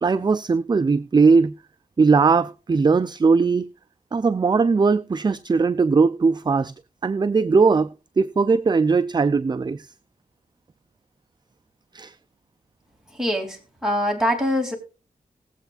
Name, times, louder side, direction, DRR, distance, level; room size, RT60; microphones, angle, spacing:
voice 1, 0.0-1.5 2.0-3.7 4.1-6.7 7.0-9.9 11.9-12.1, right 4 dB, 30° right, 0.4 m, -19 dB
voice 2, 13.1-14.8, equal, 5° right, 2.9 m, -24 dB
19.5 x 7.9 x 2.4 m
wide cardioid pair, 80°, 15 cm